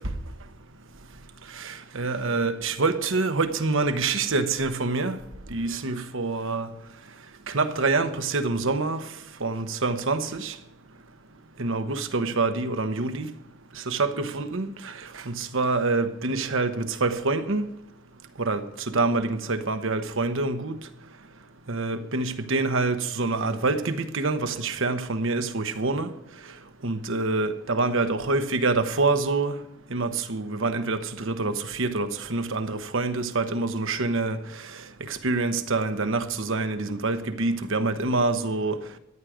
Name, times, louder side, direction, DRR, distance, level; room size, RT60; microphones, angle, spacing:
voice 1, 1.6-5.2 5.5-6.7 7.5-9.0 9.4-10.5 11.6-13.3 13.9-14.9 15.3-17.7 18.4-20.8 21.7-26.1 26.8-29.5 29.9-34.4 35.1-38.8, right 3 dB, 65° right, 1.1 m, -26 dB
14.0 x 10.5 x 5.0 m
head